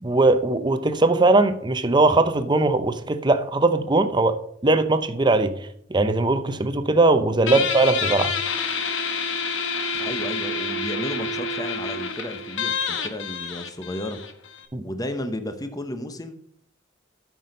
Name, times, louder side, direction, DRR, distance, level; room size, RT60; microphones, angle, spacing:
voice 1, 0.0-5.6 5.9-8.3 14.7-14.8, right 2 dB, 25° right, 0.7 m, -20 dB
Guitar, 7.5-14.7, left 4 dB, 80° left, 1.1 m, -28 dB
voice 2, 9.9-14.2 14.8-16.4, left 1 dB, 20° left, 0.9 m, -33 dB
9.2 x 6.1 x 5.3 m
head